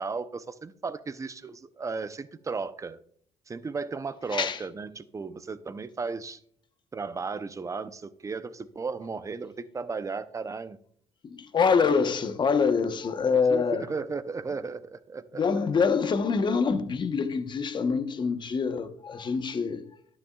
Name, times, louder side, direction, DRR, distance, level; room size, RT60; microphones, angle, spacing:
voice 1, 0.0-3.0 3.5-6.4 6.9-10.8 13.5-15.4, right 4 dB, 25° right, 0.7 m, -35 dB
voice 2, 11.2-13.9 15.3-19.8, left 5 dB, 40° left, 1.1 m, -25 dB
12.0 x 9.8 x 2.4 m
supercardioid pair, 80°, 12 cm